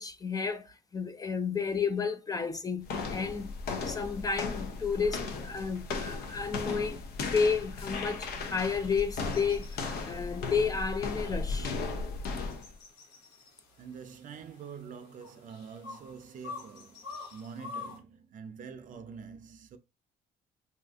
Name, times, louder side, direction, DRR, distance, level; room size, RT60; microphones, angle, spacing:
voice 1, 0.0-3.5 3.9-7.0 7.3-11.8, left 5 dB, 20° left, 0.4 m, -32 dB
sound 1, 2.8-12.7, left 4 dB, 65° left, 0.7 m, -36 dB
sound 2, 8.0-18.0, left 4 dB, 85° left, 1.3 m, -49 dB
voice 2, 13.8-19.8, right 6 dB, 50° right, 0.5 m, -46 dB
2.7 x 2.5 x 3.5 m
cardioid pair, 110°, 17 cm